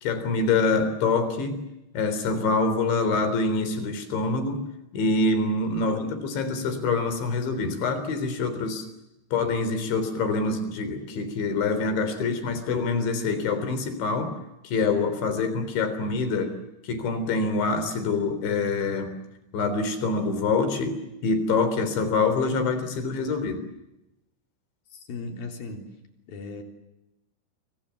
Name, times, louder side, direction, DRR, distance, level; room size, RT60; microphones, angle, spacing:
voice 1, 0.0-1.6 1.9-4.6 4.9-8.9 9.3-14.3 14.6-16.5 16.8-19.1 19.5-23.6, left 3 dB, 85° left, 11 dB, 6.1 m, -25 dB
voice 2, 24.9-25.9 26.3-26.6, left 3 dB, 55° left, 4 dB, 5.2 m, -37 dB
30.0 x 25.0 x 7.1 m, 0.92 s
omnidirectional pair, 5.1 m